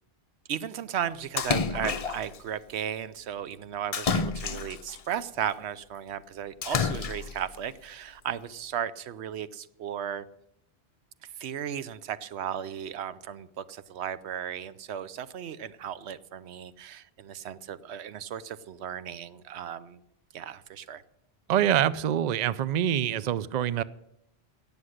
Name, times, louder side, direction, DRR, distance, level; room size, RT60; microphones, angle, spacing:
voice 1, 0.5-10.2 11.4-20.0 20.3-21.0, right 9 dB, 85° right, 15 dB, 1.0 m, -35 dB
Splash splatter, 1.4-2.4 3.9-5.0 6.6-7.4, left 5 dB, 40° left, 0.6 m, -29 dB
voice 2, 21.5-23.8, right 10 dB, 50° right, 18 dB, 0.5 m, -25 dB
17.5 x 7.1 x 6.5 m, 0.82 s
omnidirectional pair, 1.1 m